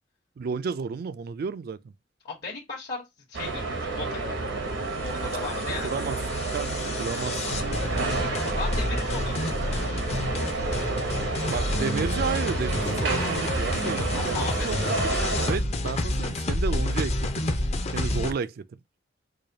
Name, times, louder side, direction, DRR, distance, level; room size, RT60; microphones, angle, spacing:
voice 1, 0.4-1.8 5.8-6.2 6.5-7.5 11.5-17.6 17.9-18.6, right 5 dB, 55° right, 0.3 m, -32 dB
voice 2, 2.2-4.4 5.0-5.9 8.2-10.1 14.1-14.7, left 4 dB, 60° left, 1.1 m, -37 dB
sound 1, 3.3-15.6, right 3 dB, 85° right, 0.9 m, -30 dB
sound 2, 5.1-18.3, left 1 dB, 35° left, 0.5 m, -29 dB
4.8 x 2.2 x 2.7 m
head